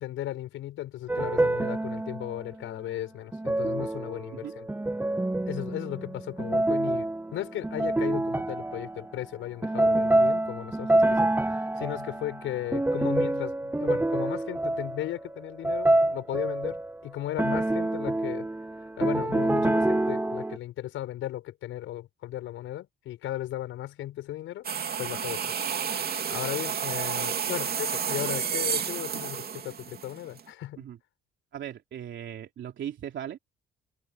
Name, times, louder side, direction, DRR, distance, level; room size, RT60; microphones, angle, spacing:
voice 1, 0.0-4.7 5.5-18.5 19.0-24.7 25.0-25.6 26.0-30.8, left 13 dB, 85° left, 6.3 m, -36 dB
sound 1, 1.1-2.5 3.3-9.1 9.6-17.0 17.4-20.6, right 1 dB, 10° right, 0.8 m, -27 dB
sound 2, 24.6-30.4, right 7 dB, 50° right, 3.0 m, -31 dB
voice 2, 31.5-33.4, right 10 dB, 70° right, 3.3 m, -38 dB
open air
cardioid pair, 90°, 20 cm